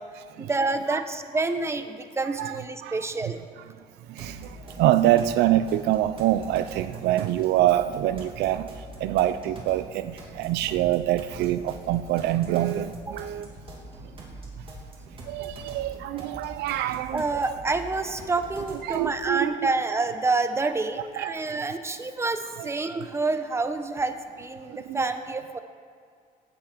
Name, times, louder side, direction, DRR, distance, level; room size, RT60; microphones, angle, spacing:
voice 1, 0.4-3.4 13.1-13.3 17.1-25.6, right 3 dB, 15° right, 9 dB, 0.9 m, -28 dB
voice 2, 2.4-3.1 3.6-3.7 4.1-13.5 14.6-14.7 15.2-17.5 18.8-19.7 21.2-21.6 22.6-22.7 24.7-25.1, right 13 dB, 80° right, 13 dB, 0.5 m, -26 dB
sound 1, 4.2-19.2, right 1 dB, 30° right, 2.9 m, -44 dB
17.5 x 8.5 x 5.1 m, 2.1 s
cardioid pair, 110°, 17 cm